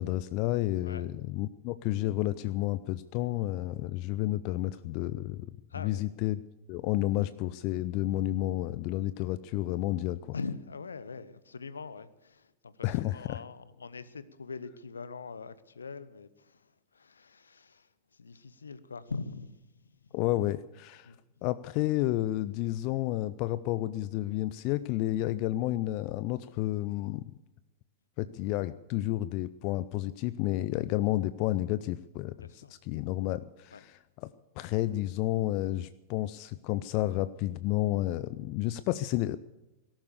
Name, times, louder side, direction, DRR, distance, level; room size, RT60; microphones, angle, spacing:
voice 1, 0.0-5.5 5.8-6.4 6.7-10.3 12.8-13.4 20.1-21.1 21.4-27.2 28.2-34.3 34.6-39.4, left 15 dB, 45° left, 0.5 m, -31 dB
voice 2, 5.7-6.1 10.3-20.1 21.0-21.2 32.4-32.7 33.7-33.8, left 4 dB, 75° left, 1.0 m, -43 dB
18.0 x 12.0 x 6.7 m
figure-of-eight pair, 90°, 0 cm